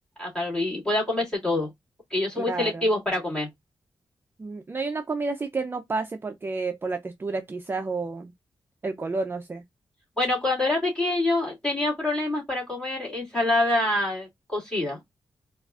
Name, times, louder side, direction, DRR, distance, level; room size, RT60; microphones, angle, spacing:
voice 1, 0.2-1.7 2.1-3.5 10.2-15.0, left 2 dB, 10° left, 2.2 m, -26 dB
voice 2, 2.4-2.9 4.4-8.3 8.8-9.6, right 3 dB, 25° right, 0.4 m, -30 dB
4.4 x 2.4 x 2.4 m
wide cardioid pair, 115°, 9 cm